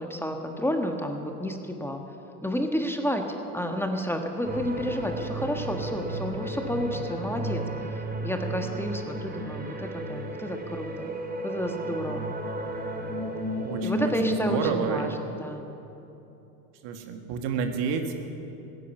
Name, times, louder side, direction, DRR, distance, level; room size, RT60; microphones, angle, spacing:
voice 1, 0.0-2.0 2.4-3.2 3.5-7.6 8.2-11.1 11.4-12.2 13.0-13.3 13.8-15.1 15.4-15.7, equal, 5° left, 4 dB, 1.4 m, -30 dB
sound 1, 4.4-14.6, right 1 dB, 20° right, 2.0 m, -33 dB
voice 2, 13.6-15.1 16.8-18.1, right 6 dB, 65° right, 5 dB, 1.7 m, -30 dB
16.0 x 9.8 x 8.2 m, 3.0 s
hypercardioid pair, 90°, 46 cm